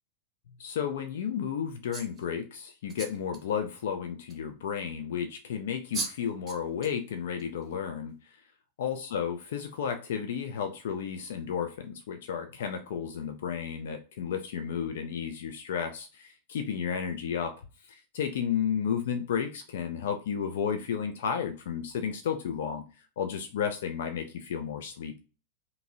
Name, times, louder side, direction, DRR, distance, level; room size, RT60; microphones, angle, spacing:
voice 1, 0.6-8.3 8.8-17.6 17.8-22.8 23.2-25.2, left 7 dB, 60° left, 7 dB, 0.3 m, -32 dB
sound 1, 1.9-2.2 2.9-3.4 4.3-4.4 5.6-5.7 5.9-6.2 6.5-7.0 7.4-7.6, right 4 dB, 25° right, 0.6 m, -37 dB
2.7 x 2.6 x 2.7 m, 0.33 s
figure-of-eight pair, 90°, 0 cm